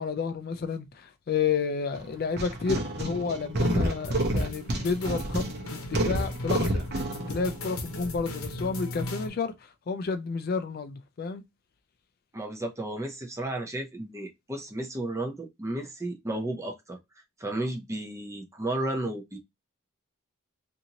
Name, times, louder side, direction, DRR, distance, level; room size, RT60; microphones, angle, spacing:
voice 1, 0.0-6.8 7.3-11.4, left 5 dB, 45° left, 0.3 m, -31 dB
sound 1, 1.9-8.4, right 1 dB, 50° right, 0.7 m, -29 dB
sound 2, 4.0-9.3, left 1 dB, 85° left, 0.8 m, -38 dB
voice 2, 12.3-17.0 17.4-19.4, right 1 dB, 15° right, 0.6 m, -33 dB
2.8 x 2.6 x 2.8 m
head